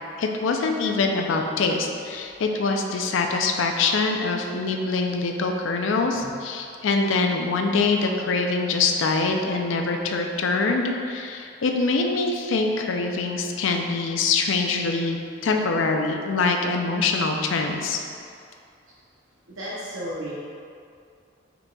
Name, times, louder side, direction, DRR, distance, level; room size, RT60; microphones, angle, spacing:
voice 1, 0.2-15.2 15.4-18.0, left 3 dB, 70° left, 3 dB, 0.4 m, -24 dB
voice 2, 19.5-20.3, equal, 85° right, -7 dB, 0.8 m, -33 dB
5.6 x 4.0 x 2.3 m, 2.4 s
head